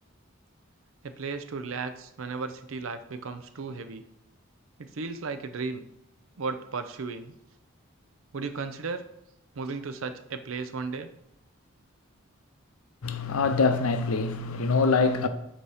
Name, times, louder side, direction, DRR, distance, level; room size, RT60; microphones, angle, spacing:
voice 1, 1.0-4.0 4.8-5.8 6.4-7.3 8.3-9.1 9.5-11.1, right 4 dB, 70° right, 0.5 m, -35 dB
voice 2, 13.0-15.3, left 4 dB, 85° left, 0.6 m, -24 dB
8.0 x 2.9 x 4.8 m
head